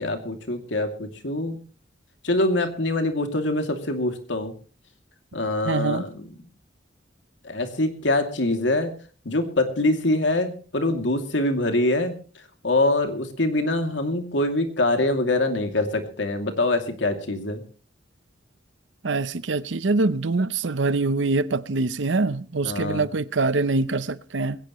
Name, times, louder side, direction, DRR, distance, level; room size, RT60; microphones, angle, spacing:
voice 1, 0.0-1.6 2.2-4.5 5.3-6.3 7.4-8.9 9.2-12.1 12.6-17.6 22.6-23.1, left 2 dB, 80° left, 2.7 m, -24 dB
voice 2, 5.7-6.0 19.0-24.6, right 3 dB, 85° right, 0.8 m, -24 dB
21.0 x 17.0 x 3.1 m
head